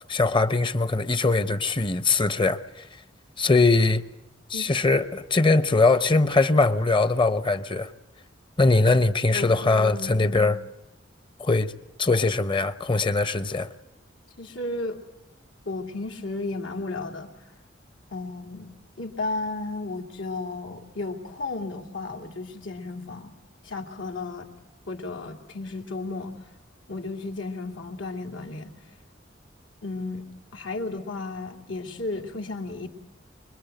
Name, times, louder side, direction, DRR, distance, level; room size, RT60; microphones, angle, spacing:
voice 1, 0.1-2.6 3.4-4.0 4.5-7.9 8.6-10.6 11.4-11.7 12.0-13.7, left 3 dB, 25° left, 0.8 m, -21 dB
voice 2, 9.3-10.5 14.4-15.0 15.6-17.3 18.1-18.7 19.0-23.3 23.6-24.5 24.9-26.4 26.9-28.7 29.8-30.3 30.5-32.9, left 3 dB, 80° left, 2.7 m, -33 dB
25.0 x 22.0 x 9.1 m
head